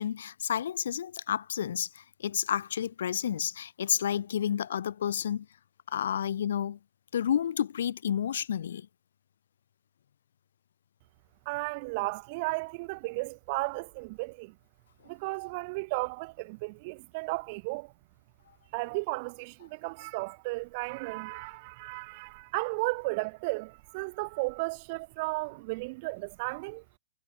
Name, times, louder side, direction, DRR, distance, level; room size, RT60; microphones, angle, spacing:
voice 1, 0.0-5.5 5.9-6.8 7.1-8.9, left 9 dB, 75° left, 2.9 m, -30 dB
voice 2, 11.4-14.5 15.1-17.9 18.7-26.8, right 26 dB, 45° right, 2.8 m, -34 dB
hypercardioid pair, 140°, 0 cm